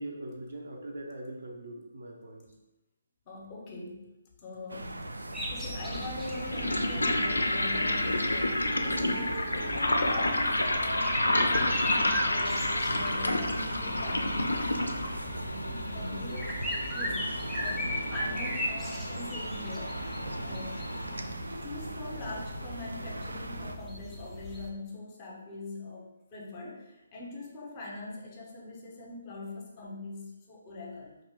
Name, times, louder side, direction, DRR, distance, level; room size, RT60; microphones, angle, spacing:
voice 1, 0.0-2.5 15.9-16.4, right 1 dB, 60° right, 0 dB, 0.6 m, -42 dB
voice 2, 3.3-5.0 5.5-14.6 15.7-16.5 16.9-17.3 17.6-20.0 20.4-20.8 21.2-31.2, left 2 dB, 30° left, -2 dB, 0.7 m, -42 dB
sound 1, 4.7-23.8, right 1 dB, 85° right, 0.3 m, -39 dB
sound 2, 4.8-4.9 5.8-21.2, left 1 dB, 85° left, 0.4 m, -31 dB
sound 3, 5.3-24.7, left 1 dB, 5° right, 0.4 m, -38 dB
2.8 x 2.5 x 3.4 m, 0.93 s
figure-of-eight pair, 145°, 0 cm